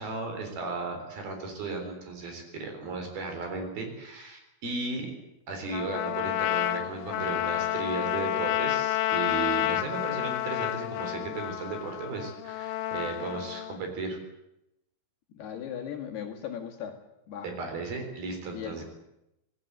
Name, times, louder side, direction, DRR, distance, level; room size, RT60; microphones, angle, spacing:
voice 1, 0.0-5.1 5.5-14.2 17.4-18.8, right 3 dB, 50° right, 5 dB, 5.6 m, -35 dB
Trumpet, 5.7-13.8, left 14 dB, 80° left, 3.5 m, -30 dB
voice 2, 15.3-17.0 17.3-17.5 18.5-18.8, left 9 dB, 60° left, 2 dB, 3.6 m, -37 dB
26.0 x 18.5 x 8.0 m, 0.88 s
omnidirectional pair, 5.6 m